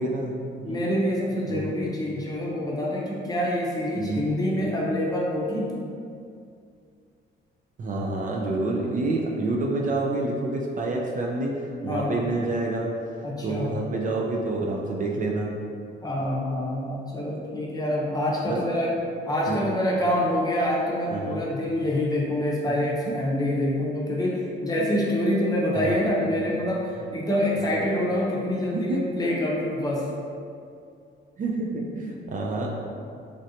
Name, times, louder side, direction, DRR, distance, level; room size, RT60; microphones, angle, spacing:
voice 1, 0.0-0.8 1.5-1.7 3.9-4.3 7.8-11.6 11.8-12.9 13.4-15.5 18.5-18.6 19.5-19.7 21.1-21.4 22.8-22.9 24.8-24.9 25.2-25.3 25.7-25.9 28.7-29.0 31.4-32.7, right 2 dB, 40° right, -1 dB, 0.4 m, -28 dB
voice 2, 0.6-5.7 11.9-12.1 13.2-13.7 16.0-18.9 19.3-30.0, left 1 dB, 20° left, -5 dB, 0.7 m, -26 dB
3.2 x 2.5 x 2.7 m, 2.4 s
cardioid pair, 90°, 20 cm